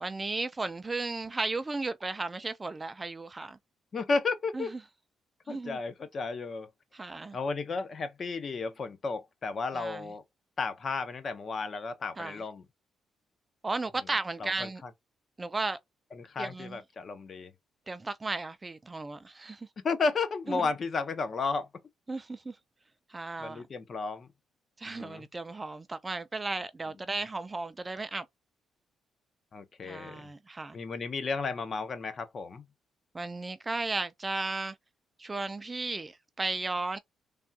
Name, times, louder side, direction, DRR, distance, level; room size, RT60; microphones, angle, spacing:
voice 1, 0.0-3.6 4.5-4.7 5.5-5.8 6.9-7.4 9.7-10.1 12.2-12.4 13.6-14.8 15.4-15.8 16.4-16.8 17.9-19.7 20.5-20.7 22.1-22.6 23.1-23.6 24.8-28.3 29.8-30.8 33.1-34.8 35.2-37.0, right 3 dB, 20° right, 0.3 m, -35 dB
voice 2, 3.9-4.7 5.5-6.7 7.3-10.2 10.6-12.6 14.4-14.7 16.1-17.5 19.8-21.7 23.4-24.3 24.9-25.2 29.5-30.3 30.7-32.6, left 4 dB, 45° left, 0.6 m, -33 dB
3.4 x 2.2 x 2.7 m
cardioid pair, 105°, 0 cm